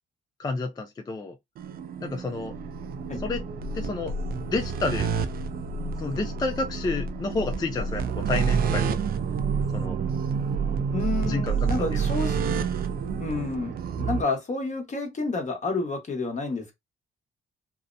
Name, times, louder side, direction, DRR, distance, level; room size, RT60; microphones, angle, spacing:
voice 1, 0.4-1.4 2.0-2.5 3.2-3.4 3.7-5.1 6.0-8.9 9.7-10.0 11.2-12.0, left 3 dB, 20° left, 0.3 m, -30 dB
sound 1, 1.6-14.2, right 6 dB, 50° right, 0.4 m, -29 dB
voice 2, 10.9-12.4 13.2-16.7, left 3 dB, 35° left, 1.0 m, -29 dB
2.7 x 2.0 x 2.5 m
cardioid pair, 90°, 20 cm